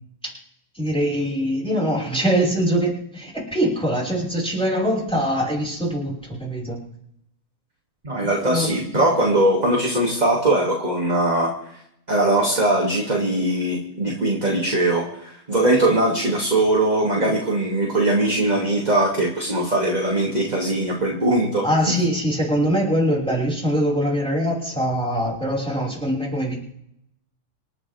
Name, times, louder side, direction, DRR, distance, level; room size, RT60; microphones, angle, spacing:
voice 1, 0.7-6.8 8.4-8.7 21.6-26.6, equal, ahead, -4 dB, 5.4 m, -23 dB
voice 2, 8.0-11.5 12.1-21.9, right 1 dB, 15° right, -2 dB, 2.4 m, -21 dB
27.5 x 11.0 x 3.7 m, 0.74 s
omnidirectional pair, 3.7 m